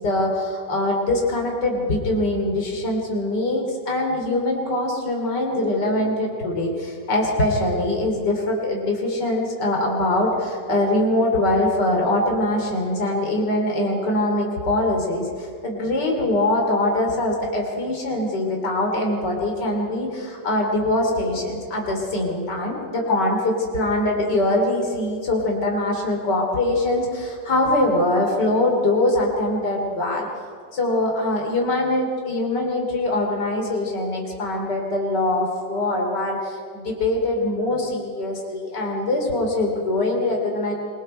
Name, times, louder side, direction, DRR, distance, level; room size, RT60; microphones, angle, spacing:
voice 1, 0.0-30.3 30.7-40.7, left 1 dB, 65° left, 0 dB, 4.0 m, -23 dB
27.0 x 24.5 x 4.4 m, 2.3 s
omnidirectional pair, 2.0 m